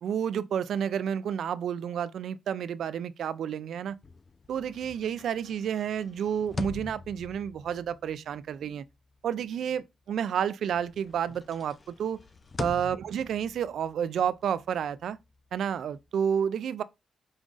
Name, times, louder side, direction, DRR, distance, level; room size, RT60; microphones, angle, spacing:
voice 1, 0.0-4.0 4.5-8.8 9.2-12.2 12.6-15.2 15.5-16.8, right 8 dB, 75° right, 0.3 m, -30 dB
sound 1, 3.9-10.4 10.7-16.1, left 3 dB, 30° left, 0.4 m, -44 dB
5.1 x 3.7 x 2.4 m
wide cardioid pair, 145°, 0 cm